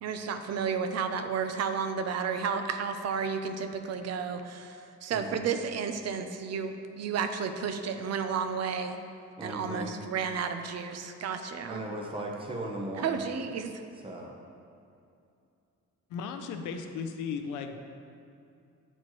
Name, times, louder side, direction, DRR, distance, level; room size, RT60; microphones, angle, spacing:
voice 1, 0.0-9.0 9.4-11.9 13.0-13.7, right 6 dB, 60° right, 8 dB, 0.5 m, -32 dB
voice 2, 9.4-9.9 11.7-13.2 14.0-14.4, right 1 dB, 15° right, 0 dB, 0.9 m, -37 dB
voice 3, 16.1-17.8, left 6 dB, 85° left, 6 dB, 0.6 m, -36 dB
8.8 x 4.3 x 3.1 m, 2.5 s
cardioid pair, 90°, 30 cm